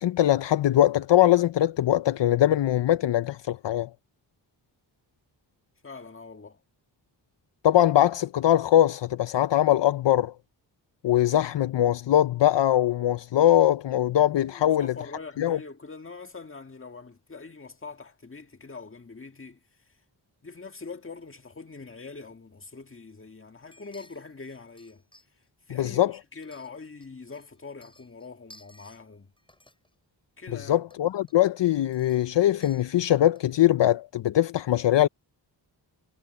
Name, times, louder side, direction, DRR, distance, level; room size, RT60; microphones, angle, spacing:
voice 1, 0.0-3.9 7.6-10.3 11.0-14.9 15.4-15.6 25.7-26.1 30.7-35.1, left 12 dB, 70° left, 0.6 m, -22 dB
voice 2, 5.8-6.6 14.4-19.6 20.4-25.0 25.7-29.3 30.4-30.8, left 4 dB, 30° left, 1.7 m, -43 dB
sound 1, 23.7-25.5 25.8-27.1 27.3-29.0 29.4-29.9 30.8-31.0 31.3-33.6 33.8-33.9, left 1 dB, 10° left, 6.6 m, -57 dB
wide cardioid pair, 135°, 44 cm